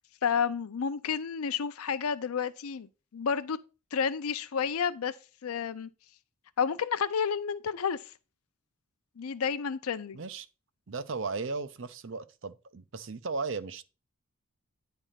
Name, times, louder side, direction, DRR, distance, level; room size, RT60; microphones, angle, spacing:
voice 1, 0.2-2.9 3.1-3.6 3.9-5.1 5.4-5.9 6.6-8.1 9.2-10.2, left 6 dB, 85° left, 0.5 m, -30 dB
voice 2, 10.1-10.5 10.9-13.8, right 4 dB, 60° right, 0.6 m, -36 dB
9.9 x 3.5 x 5.6 m
head